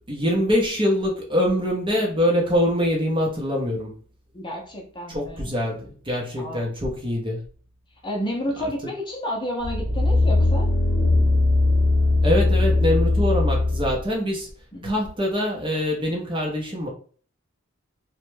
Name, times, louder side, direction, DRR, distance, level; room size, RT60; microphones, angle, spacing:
voice 1, 0.1-4.0 5.1-7.4 8.6-8.7 12.2-14.5 14.8-16.9, left 1 dB, 25° right, 0.7 m, -24 dB
voice 2, 4.3-5.5 6.4-6.7 8.0-10.7 14.7-15.0, equal, 20° left, 0.7 m, -31 dB
sound 1, 9.6-14.0 14.5-14.6, left 2 dB, 40° right, 1.1 m, -20 dB
3.1 x 2.2 x 3.1 m
head